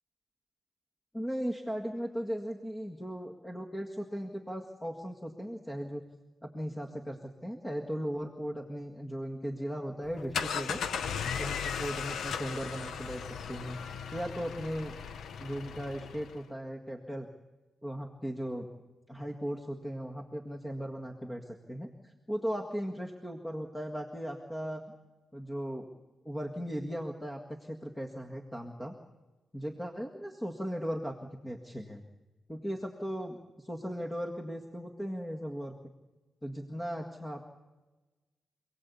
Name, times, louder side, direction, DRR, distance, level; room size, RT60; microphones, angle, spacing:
voice 1, 1.1-6.0 6.4-10.8 11.4-13.8 14.1-14.9 15.4-17.3 17.8-18.7 19.1-24.8 25.3-25.9 26.3-28.9 29.5-32.0 32.5-35.7 36.4-37.4, equal, 10° left, 2 dB, 1.8 m, -37 dB
sound 1, 10.0-16.4, left 7 dB, 75° left, 0.9 m, -37 dB
27.5 x 18.0 x 8.4 m, 1.2 s
cardioid pair, 120°, 0 cm